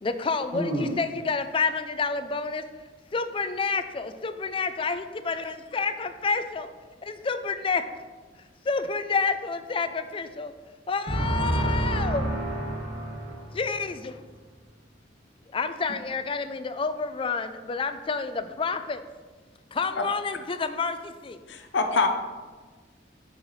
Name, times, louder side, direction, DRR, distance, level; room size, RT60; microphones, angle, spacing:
voice 1, 0.0-2.6 3.1-6.7 7.0-7.8 8.7-10.5 10.9-12.2 13.5-14.2 15.5-19.0 19.7-21.4, left 4 dB, 30° left, 10 dB, 0.4 m, -29 dB
voice 2, 0.5-0.9 11.1-13.6, right 1 dB, 75° right, -5 dB, 2.4 m, -28 dB
voice 3, 21.5-22.1, left 4 dB, 70° left, 6 dB, 0.7 m, -24 dB
9.5 x 5.5 x 3.2 m, 1.4 s
head